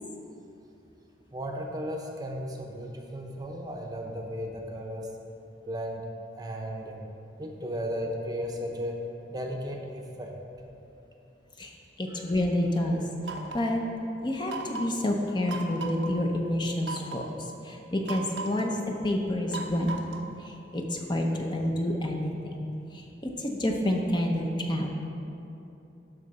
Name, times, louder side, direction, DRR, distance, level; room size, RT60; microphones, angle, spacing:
voice 1, 1.3-5.1 5.7-6.1 6.3-7.0 7.4-10.3 12.1-12.2, equal, 20° right, 1 dB, 0.8 m, -35 dB
voice 2, 12.0-13.8 14.2-17.2 17.7-19.9 20.7-22.5 23.4-24.9, left 1 dB, 25° left, 1 dB, 0.7 m, -28 dB
sound 1, 13.2-13.8 14.5-15.0 15.5-16.1 16.8-17.3 18.1-18.7 19.5-20.4, right 3 dB, 90° right, 0.9 m, -37 dB
11.5 x 3.9 x 6.7 m, 2.9 s
head